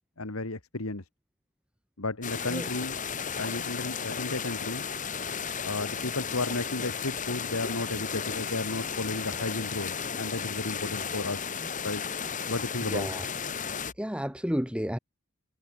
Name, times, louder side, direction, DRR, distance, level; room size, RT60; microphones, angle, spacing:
voice 1, 0.2-1.0 2.0-3.0 3.4-4.9 5.6-11.4 11.8-12.0 12.5-13.1, left 2 dB, 75° left, 2.0 m, -33 dB
sound 1, 2.2-13.9, left 6 dB, 35° left, 1.9 m, -34 dB
voice 2, 12.9-13.2 14.0-15.0, equal, 5° right, 2.1 m, -31 dB
head